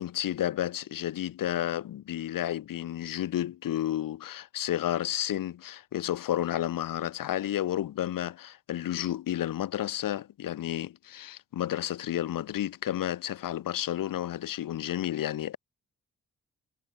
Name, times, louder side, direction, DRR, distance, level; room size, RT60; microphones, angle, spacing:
voice 1, 0.0-15.6, left 12 dB, 85° left, 4.7 m, -31 dB
cardioid pair, 60°, 32 cm